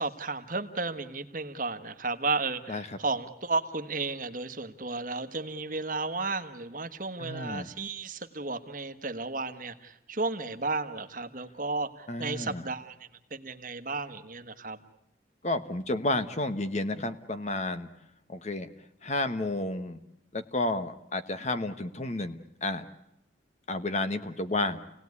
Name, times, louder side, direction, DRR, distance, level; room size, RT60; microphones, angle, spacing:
voice 1, 0.0-14.8, right 3 dB, 45° right, 9 dB, 1.4 m, -33 dB
voice 2, 2.7-3.0 7.2-7.7 12.1-12.6 15.4-17.9 18.3-18.7 19.0-20.0 20.3-22.8 23.7-24.8, left 2 dB, 40° left, 10 dB, 1.2 m, -31 dB
29.0 x 18.0 x 9.7 m, 0.84 s
head